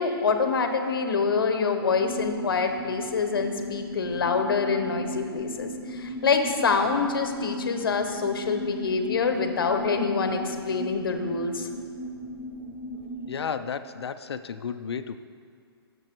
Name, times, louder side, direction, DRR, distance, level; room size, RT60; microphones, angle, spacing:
voice 1, 0.0-11.7, left 5 dB, 60° left, 6 dB, 0.9 m, -26 dB
sound 1, 1.9-13.3, left 1 dB, 5° right, 0.6 m, -36 dB
voice 2, 13.3-15.2, left 6 dB, 75° left, 11 dB, 0.5 m, -33 dB
14.5 x 7.0 x 3.0 m, 2.2 s
hypercardioid pair, 180°, 14 cm